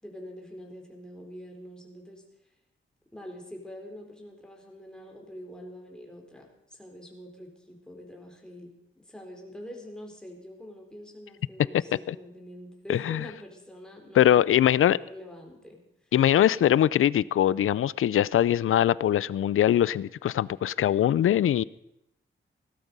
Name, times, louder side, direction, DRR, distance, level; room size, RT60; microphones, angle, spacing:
voice 1, 0.0-2.2 3.1-8.7 9.1-16.1, equal, 5° left, 1 dB, 4.2 m, -45 dB
voice 2, 12.9-13.2 14.1-15.0 16.1-21.6, left 11 dB, 85° left, 21 dB, 0.5 m, -22 dB
17.5 x 12.0 x 5.4 m, 0.82 s
cardioid pair, 80°, 21 cm